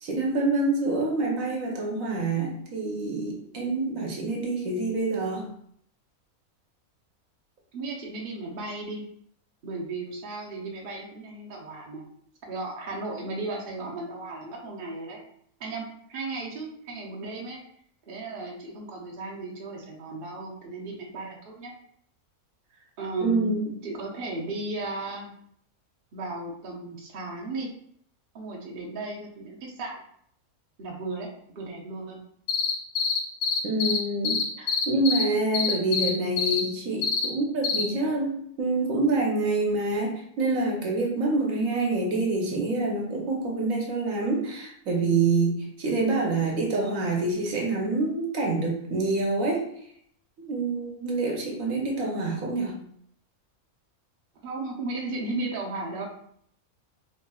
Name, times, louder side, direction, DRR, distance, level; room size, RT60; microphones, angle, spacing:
voice 1, 0.0-5.5 23.2-23.7 33.6-49.6 50.4-52.8, right 2 dB, 70° right, -1 dB, 1.2 m, -26 dB
voice 2, 7.7-9.0 9.6-12.0 12.4-15.2 15.6-17.6 18.0-21.7 23.0-23.6 23.8-25.3 26.1-27.7 28.3-30.0 30.8-32.2 54.4-56.1, right 3 dB, 45° right, -3 dB, 0.9 m, -35 dB
sound 1, 32.5-34.0 34.2-35.2 35.5-36.1 36.4-36.6 37.0-37.3 37.6-37.8, left 6 dB, 70° left, 1.0 m, -25 dB
4.2 x 3.2 x 2.3 m, 0.67 s
omnidirectional pair, 1.5 m